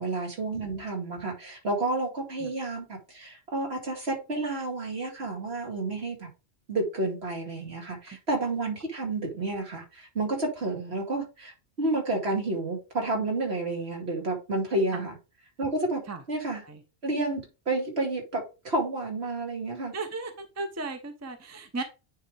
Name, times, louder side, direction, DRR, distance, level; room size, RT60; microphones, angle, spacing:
voice 1, 0.0-6.3 6.7-15.2 15.6-16.0 16.3-16.6 17.0-19.9, right 2 dB, 65° right, 2.5 m, -30 dB
voice 2, 19.9-21.8, right 3 dB, 15° right, 0.8 m, -35 dB
9.2 x 3.6 x 3.4 m
omnidirectional pair, 1.1 m